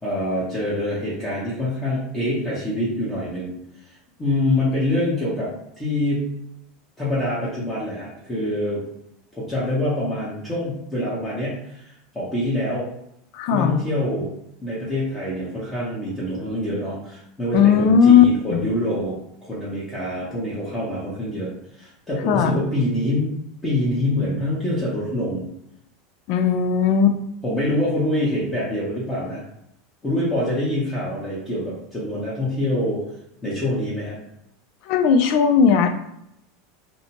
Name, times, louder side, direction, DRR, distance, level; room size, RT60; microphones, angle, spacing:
voice 1, 0.0-3.6 3.8-5.5 5.8-6.3 7.0-8.8 9.3-12.9 13.5-14.3 14.6-23.3 23.6-25.5 27.4-29.4 30.0-33.0 33.4-34.2, left 1 dB, 15° left, -8 dB, 0.8 m, -25 dB
voice 2, 13.3-13.8 17.5-18.2 18.5-18.6 22.2-22.6 26.3-27.2 34.8-35.9, left 7 dB, 55° left, 8 dB, 0.4 m, -16 dB
2.6 x 2.1 x 2.9 m, 0.78 s
supercardioid pair, 130°, 0 cm